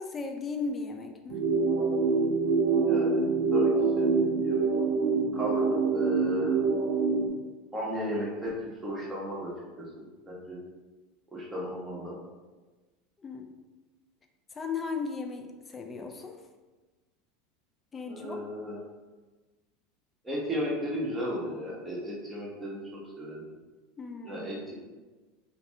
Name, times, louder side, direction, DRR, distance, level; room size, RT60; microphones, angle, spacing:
voice 1, 0.0-1.4 13.2-13.5 14.5-16.4 17.9-18.4 24.0-24.5, left 4 dB, 25° left, 4 dB, 0.4 m, -36 dB
sound 1, 1.3-7.3, right 4 dB, 65° right, 0.5 m, -25 dB
voice 2, 2.8-4.7 5.3-6.6 7.7-9.9 10.3-10.6 11.3-12.2 18.1-18.8 20.2-23.4 24.2-24.7, equal, 10° right, -6 dB, 1.1 m, -35 dB
2.6 x 2.5 x 3.3 m, 1.3 s
supercardioid pair, 110°, 0 cm